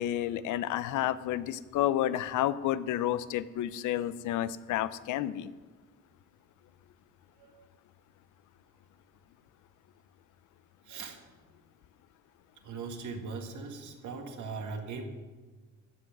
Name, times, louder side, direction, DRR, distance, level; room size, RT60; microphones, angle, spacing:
voice 1, 0.0-5.5, left 12 dB, 80° left, 15 dB, 0.6 m, -30 dB
voice 2, 10.9-11.2 12.6-15.0, right 4 dB, 75° right, 4 dB, 1.9 m, -40 dB
14.0 x 7.8 x 6.0 m, 1.4 s
cardioid pair, 90°, 30 cm